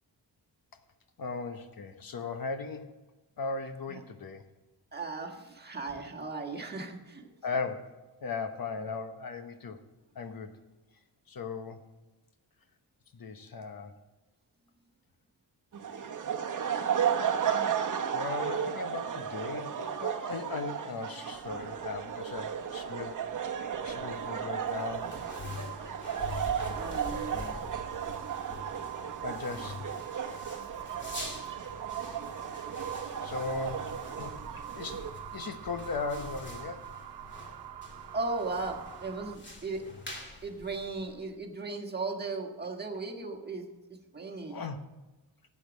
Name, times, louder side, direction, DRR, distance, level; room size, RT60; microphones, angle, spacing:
voice 1, 1.2-2.9 3.4-4.4 7.4-9.8 10.1-10.6 11.3-11.8 13.1-13.9 18.1-23.2 23.8-25.1 27.3-27.6 29.2-29.9 32.6-32.9 33.2-34.4 34.7-35.0 35.3-36.9 44.5-44.8, left 4 dB, 55° left, 8 dB, 1.1 m, -37 dB
voice 2, 4.9-7.3 26.8-27.4 38.1-39.8 40.4-43.7 44.1-44.6, right 3 dB, 25° right, 1 dB, 1.5 m, -36 dB
sound 1, 15.7-35.1, right 8 dB, 45° right, 1.0 m, -34 dB
sound 2, 21.3-39.4, right 12 dB, 65° right, 0.7 m, -45 dB
sound 3, 23.6-41.4, left 2 dB, 25° left, 2.2 m, -46 dB
12.0 x 8.5 x 6.2 m, 1.1 s
wide cardioid pair, 130°, 42 cm